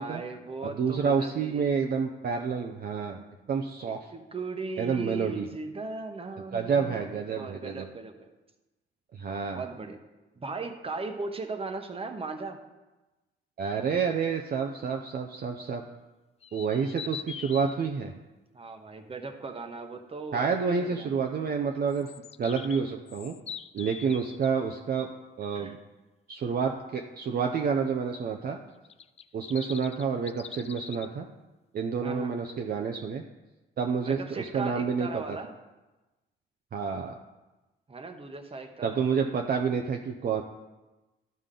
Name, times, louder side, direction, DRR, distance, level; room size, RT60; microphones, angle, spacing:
voice 1, 0.0-1.7 4.1-8.3 9.5-10.0 10.3-12.6 18.5-20.5 20.8-21.2 25.5-25.7 32.0-32.4 34.0-35.5 37.9-39.0, right 3 dB, 30° right, 6 dB, 1.0 m, -38 dB
voice 2, 0.6-3.2 3.5-4.1 4.8-5.5 6.5-7.8 9.1-9.6 13.6-15.8 16.5-18.1 20.3-22.1 22.4-23.3 23.7-25.1 25.4-25.8 26.3-28.6 29.3-31.3 31.7-33.2 33.8-35.4 36.7-37.2 38.8-40.4, right 6 dB, 50° right, 3 dB, 0.6 m, -29 dB
sound 1, 16.4-17.7 21.9-24.5 28.8-31.1, left 7 dB, 30° left, 0.3 m, -42 dB
13.0 x 5.2 x 3.8 m, 1.1 s
cardioid pair, 90°, 20 cm